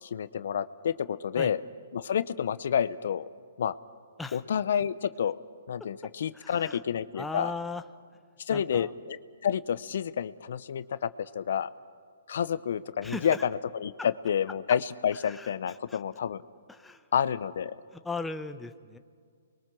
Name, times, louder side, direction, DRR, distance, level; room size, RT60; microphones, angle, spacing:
voice 1, 0.0-1.6 1.9-3.3 3.6-3.7 4.3-5.4 5.7-7.5 8.5-9.2 9.4-11.7 12.3-16.4 17.1-17.7, left 8 dB, 65° left, 15 dB, 0.7 m, -29 dB
voice 2, 6.3-6.8 7.1-7.8 8.5-8.9 13.0-13.4 14.0-14.1 15.2-16.0 16.7-17.1 17.9-19.0, left 3 dB, 5° left, 8 dB, 0.8 m, -38 dB
29.0 x 22.5 x 6.1 m, 2.1 s
hypercardioid pair, 140°, 0 cm